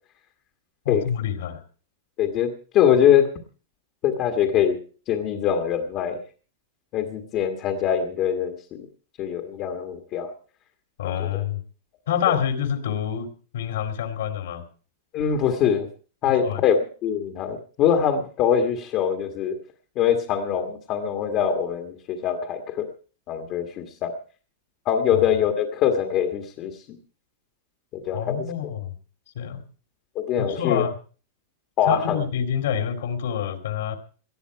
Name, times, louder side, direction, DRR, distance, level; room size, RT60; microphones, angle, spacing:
voice 1, 0.8-1.6 11.0-11.6 12.1-14.7 16.2-16.6 25.1-25.2 28.1-28.9 29.3-29.6 30.4-30.9 31.9-34.0, left 8 dB, 65° left, 9 dB, 2.8 m, -27 dB
voice 2, 2.2-3.3 4.0-4.8 5.1-6.2 6.9-8.8 9.2-10.3 11.0-11.3 15.1-15.9 16.2-19.6 19.9-22.9 23.3-24.1 24.8-26.7 27.9-28.5 30.1-30.8 31.8-32.2, left 8 dB, 25° left, 5 dB, 1.6 m, -23 dB
18.5 x 13.0 x 4.6 m, 0.39 s
supercardioid pair, 180°, 0 cm